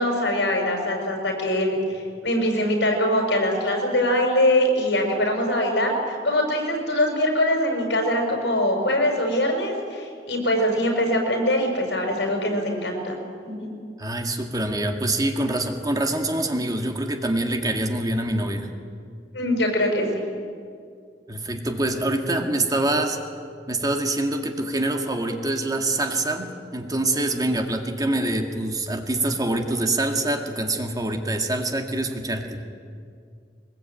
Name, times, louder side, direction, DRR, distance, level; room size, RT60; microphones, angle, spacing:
voice 1, 0.0-13.2 13.4-13.7 19.3-20.3, left 1 dB, 80° left, 3 dB, 5.8 m, -23 dB
voice 2, 14.0-18.7 21.3-23.2 23.7-32.6, right 1 dB, 20° right, 4 dB, 2.0 m, -25 dB
22.5 x 21.0 x 9.1 m, 2.2 s
head